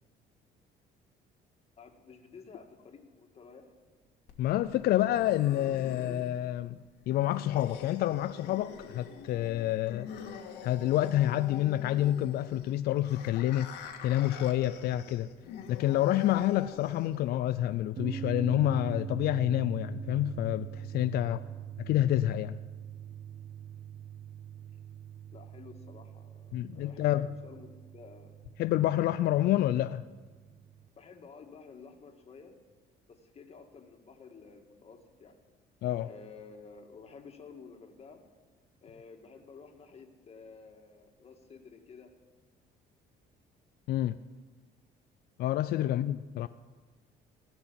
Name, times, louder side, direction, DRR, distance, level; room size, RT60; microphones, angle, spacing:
voice 1, 1.8-3.7 25.3-28.4 31.0-32.6 33.1-35.4 36.1-38.2 38.8-42.1, left 5 dB, 35° left, 1.9 m, -52 dB
sound 1, 4.3-17.3, left 7 dB, 85° left, 1.8 m, -45 dB
voice 2, 4.4-6.8 7.1-10.1 10.6-13.7 14.0-15.3 15.7-21.4 21.8-22.6 26.5-27.3 28.6-30.0 35.8-36.1 43.9-44.2 45.4-46.5, left 13 dB, 65° left, 0.4 m, -28 dB
sound 2, 18.0-30.9, right 8 dB, 45° right, 0.7 m, -43 dB
17.0 x 6.2 x 9.7 m
cardioid pair, 110°, 17 cm